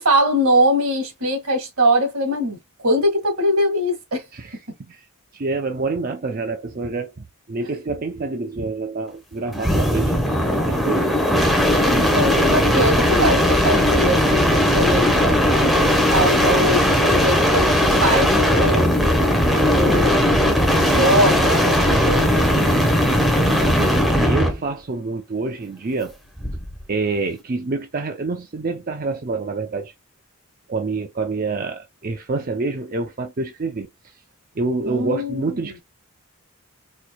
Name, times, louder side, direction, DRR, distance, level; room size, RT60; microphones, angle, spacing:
voice 1, 0.0-2.6 2.8-4.2 7.7-7.8 11.8-15.5 15.7-19.2 19.7-22.5 34.8-35.7, equal, 75° right, 1.8 m, -22 dB
voice 2, 5.3-10.2 10.5-11.2 20.9-21.3 22.2-22.8 23.5-26.2 26.9-29.9 30.7-34.2 34.6-35.8, right 3 dB, 40° right, 0.5 m, -27 dB
sound 1, 9.5-24.6 26.4-26.8, equal, ahead, 0.8 m, -18 dB
4.4 x 2.8 x 2.2 m
head